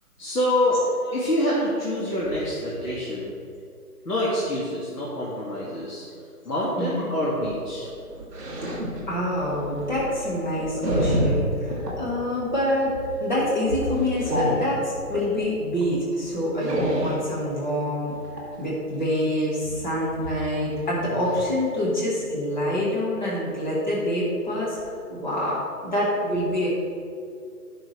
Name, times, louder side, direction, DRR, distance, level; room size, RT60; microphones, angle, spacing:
voice 1, 0.2-0.8 1.1-3.3 4.0-6.0 6.4-7.9, left 1 dB, 80° left, -7 dB, 2.5 m, -26 dB
sound 1, 7.2-12.0 12.4-12.7 13.0-13.3 13.8-15.3 15.8-15.9 16.1-17.3 18.1-18.5 19.6-19.8 20.2-20.3 20.6-20.7 20.9-21.4 21.9-22.0, equal, 10° right, 1.5 m, -28 dB
voice 2, 9.1-18.1 18.6-26.7, left 1 dB, 30° left, -6 dB, 1.9 m, -26 dB
14.5 x 6.2 x 3.4 m, 2.4 s
hypercardioid pair, 175°, 47 cm